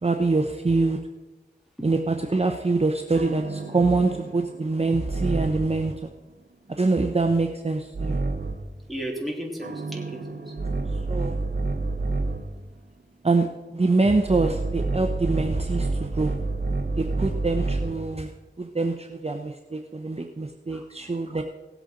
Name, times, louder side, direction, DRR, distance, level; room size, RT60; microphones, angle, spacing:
voice 1, 0.0-1.0 1.8-6.1 6.7-8.2 11.1-11.4 13.2-16.4 17.0-18.3 18.6-21.4, right 3 dB, 35° right, 4 dB, 0.8 m, -25 dB
sound 1, 3.2-5.9 7.9-8.8 9.6-12.6 14.3-18.1, right 3 dB, 60° right, 1.0 m, -29 dB
voice 2, 8.9-10.5 20.7-21.1, right 1 dB, ahead, -2 dB, 3.1 m, -35 dB
18.0 x 8.2 x 3.8 m, 1.2 s
wide cardioid pair, 45°, 19 cm